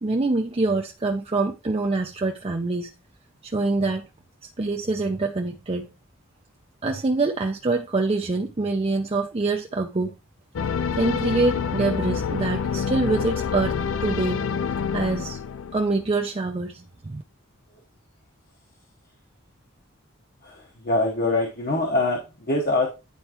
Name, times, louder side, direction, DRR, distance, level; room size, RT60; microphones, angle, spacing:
voice 1, 0.0-2.9 3.4-4.0 4.4-5.9 6.8-10.1 10.9-13.7 14.0-14.4 14.9-15.4 15.7-17.2, right 3 dB, 25° right, 0.5 m, -25 dB
sound 1, 10.5-16.1, left 6 dB, 65° left, 0.4 m, -27 dB
voice 2, 20.4-22.9, left 2 dB, 45° left, 1.1 m, -24 dB
9.7 x 4.5 x 3.0 m
head